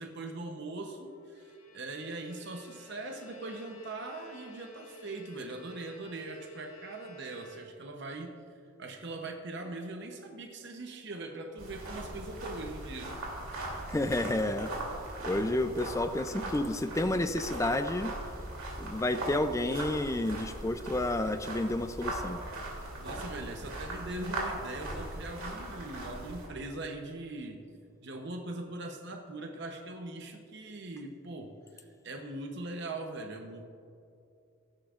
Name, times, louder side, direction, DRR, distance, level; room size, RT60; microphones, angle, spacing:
voice 1, 0.0-8.3 8.8-13.2 23.0-27.6 28.0-33.6, right 2 dB, 55° right, 4 dB, 0.8 m, -41 dB
Bowed string instrument, 1.1-8.1, right 1 dB, 80° left, 1.7 m, -52 dB
sound 1, 11.6-26.5, right 1 dB, 80° right, 2.8 m, -39 dB
voice 2, 13.9-14.7 15.2-18.1 18.8-22.4, left 1 dB, 15° left, 9 dB, 0.3 m, -30 dB
16.0 x 11.5 x 2.5 m, 2.6 s
head